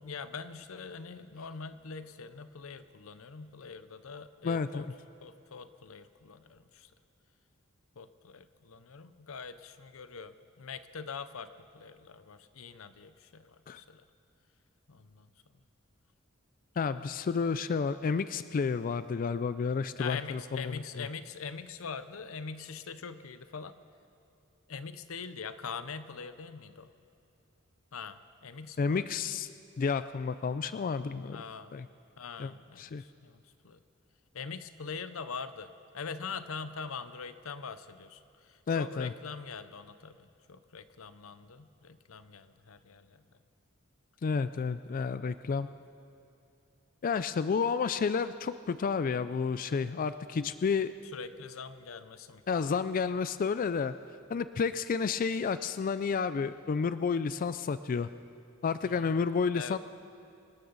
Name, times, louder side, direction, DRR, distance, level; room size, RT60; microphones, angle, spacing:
voice 1, 0.0-4.8 5.2-6.9 8.0-14.0 14.9-15.3 20.0-23.8 24.7-26.9 27.9-29.0 31.3-31.7 32.2-33.8 34.3-43.2 51.1-52.4 58.8-59.2 59.5-59.8, left 5 dB, 90° left, 12 dB, 0.7 m, -43 dB
voice 2, 4.4-4.9 13.7-13.8 16.8-21.0 28.8-29.5 29.8-31.4 31.7-31.9 32.4-32.5 32.8-33.0 38.7-39.1 44.2-45.7 47.0-50.9 52.5-53.9 54.3-58.1 58.6-59.8, left 5 dB, 40° left, 13 dB, 0.3 m, -31 dB
25.5 x 12.5 x 4.0 m, 2.7 s
head